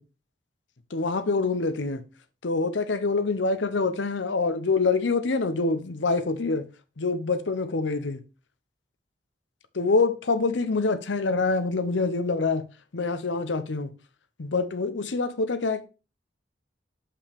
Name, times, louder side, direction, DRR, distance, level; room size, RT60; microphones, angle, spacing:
voice 1, 0.9-2.0 2.4-6.6 7.0-8.2 9.7-12.6 12.9-13.9 14.4-15.8, left 3 dB, 80° left, 0.8 m, -25 dB
7.0 x 5.6 x 3.5 m
head